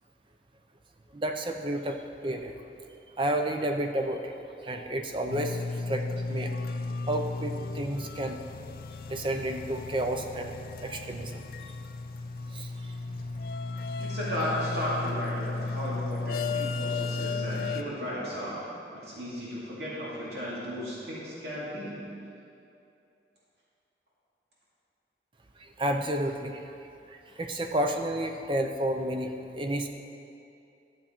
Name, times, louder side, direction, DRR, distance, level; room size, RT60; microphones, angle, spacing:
voice 1, 1.1-2.5 3.2-4.3 4.6-6.5 7.1-8.4 9.1-10.5 10.8-11.4 12.5-12.9 25.6-26.7 27.1-29.9, right 1 dB, 30° right, 4 dB, 0.6 m, -31 dB
sound 1, 5.3-17.8, left 3 dB, 50° left, 0.4 m, -34 dB
voice 2, 14.0-22.0, equal, 75° right, -7 dB, 2.3 m, -35 dB
13.0 x 7.4 x 4.4 m, 2.7 s
head